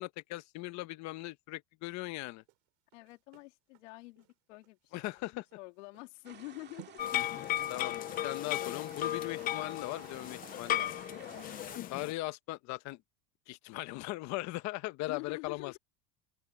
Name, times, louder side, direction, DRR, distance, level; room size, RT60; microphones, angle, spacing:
voice 1, 0.0-2.4 4.9-5.4 7.7-11.0 11.9-13.0 13.5-15.7, left 19 dB, 50° left, 1.2 m, -39 dB
sound 1, 2.4-11.0 11.3-11.5, right 22 dB, 70° right, 3.3 m, -61 dB
voice 2, 2.9-7.1 15.1-15.8, left 24 dB, 90° left, 3.0 m, -48 dB
sound 2, 6.2-11.8, right 9 dB, 30° right, 2.2 m, -54 dB
sound 3, 7.0-12.1, left 12 dB, 25° left, 0.4 m, -35 dB
supercardioid pair, 150°, 36 cm